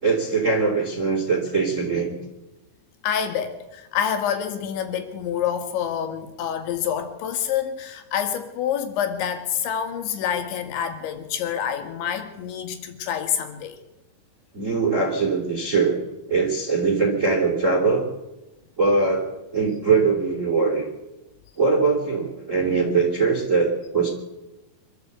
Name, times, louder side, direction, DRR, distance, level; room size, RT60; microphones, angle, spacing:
voice 1, 0.0-2.1 14.5-16.0 16.3-18.1 18.8-20.9 21.6-24.1, right 4 dB, 20° right, 1 dB, 3.0 m, -22 dB
voice 2, 3.0-13.8, left 8 dB, 75° left, 7 dB, 4.4 m, -27 dB
25.5 x 13.0 x 8.2 m, 1.0 s
omnidirectional pair, 5.3 m